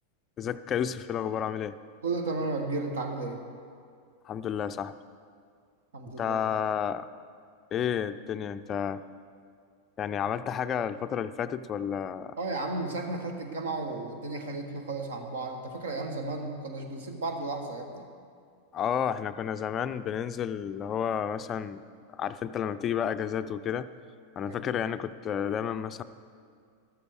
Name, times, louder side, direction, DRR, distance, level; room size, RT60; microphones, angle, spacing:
voice 1, 0.4-1.8 4.3-4.9 6.2-7.1 7.7-9.0 10.0-12.4 18.7-21.8 22.1-23.9 24.4-26.0, left 8 dB, 30° left, 12 dB, 0.4 m, -31 dB
voice 2, 2.0-3.4 5.9-6.4 12.4-18.1 24.4-24.8, right 3 dB, 65° right, 5 dB, 1.6 m, -34 dB
13.0 x 13.0 x 4.7 m, 2.2 s
figure-of-eight pair, 90°, 0 cm